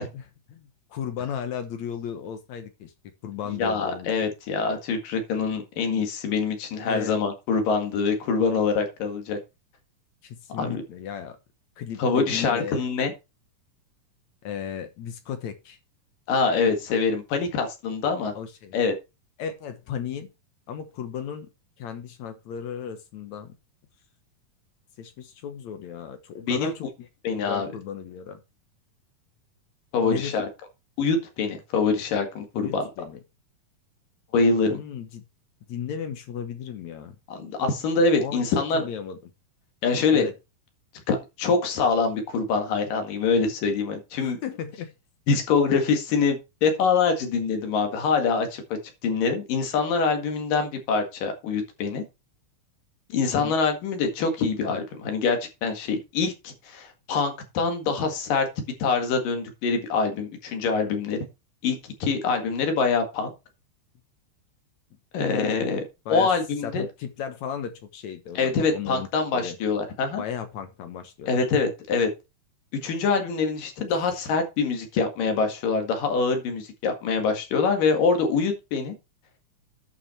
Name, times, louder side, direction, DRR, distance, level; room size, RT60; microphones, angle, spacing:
voice 1, 0.1-2.9 3.2-4.1 6.8-7.2 10.2-11.4 11.8-12.8 14.4-15.8 18.4-18.8 19.4-20.3 20.7-21.5 21.8-23.5 25.0-27.1 27.4-28.4 30.0-30.5 32.5-33.2 34.7-35.2 35.7-37.1 38.2-39.3 40.1-40.3 44.2-44.9 53.3-53.6 65.6-65.8 66.1-66.3 66.6-69.6 70.1-71.4 73.9-74.1, left 8 dB, 65° left, 2.2 m, -35 dB
voice 2, 3.6-9.4 10.5-10.8 12.0-13.1 16.3-18.3 18.7-18.9 26.4-26.7 27.2-27.7 29.9-30.5 31.0-32.8 34.3-34.8 37.3-38.8 39.8-40.3 41.1-44.4 45.3-48.6 49.0-52.0 53.1-58.5 58.8-61.2 61.6-63.3 65.1-65.8 66.1-66.9 68.4-70.2 71.3-72.1 72.8-79.0, left 4 dB, 80° left, 3.6 m, -24 dB
11.5 x 6.1 x 4.3 m
omnidirectional pair, 3.8 m